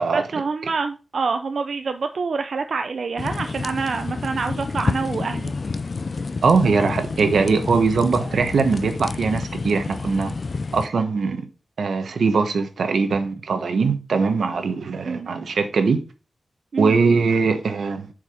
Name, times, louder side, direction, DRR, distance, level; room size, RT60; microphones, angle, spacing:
voice 1, 0.1-5.5 15.0-15.3 16.7-17.0, right 4 dB, 65° right, 0.5 m, -26 dB
sound 1, 3.2-10.9, left 4 dB, 45° left, 0.4 m, -29 dB
voice 2, 6.4-10.3 10.7-11.5 11.8-16.0 16.8-18.1, right 4 dB, 90° right, 1.2 m, -21 dB
7.4 x 4.9 x 5.0 m
wide cardioid pair, 155°, 0 cm